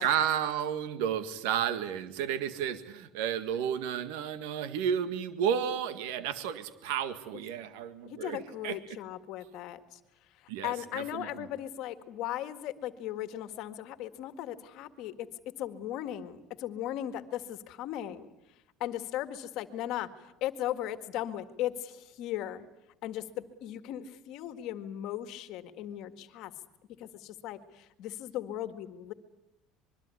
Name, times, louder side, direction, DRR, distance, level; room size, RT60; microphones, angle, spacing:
voice 1, 0.0-8.8 10.5-11.5, right 9 dB, 90° right, 11 dB, 1.8 m, -32 dB
voice 2, 8.0-10.0 10.4-15.3 15.6-18.3 18.8-20.1 20.4-22.7 23.0-26.5 27.0-29.1, left 12 dB, 50° left, 11 dB, 1.9 m, -37 dB
25.5 x 23.0 x 9.8 m, 0.86 s
cardioid pair, 175°, 0 cm